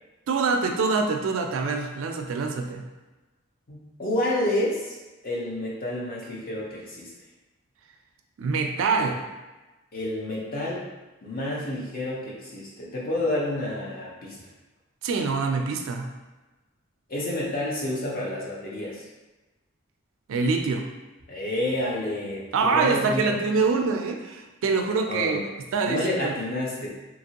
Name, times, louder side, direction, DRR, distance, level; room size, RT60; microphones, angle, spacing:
voice 1, 0.3-2.9 8.4-9.2 15.0-16.1 20.3-20.9 22.5-25.4 25.7-26.3, right 4 dB, 65° right, 4 dB, 0.3 m, -25 dB
voice 2, 3.7-5.0 5.2-7.1 9.9-10.9 11.2-14.4 17.1-19.0 21.3-23.4 25.1-25.4 25.9-26.9, left 1 dB, 40° left, -4 dB, 0.7 m, -29 dB
2.9 x 2.5 x 2.8 m, 1.1 s
head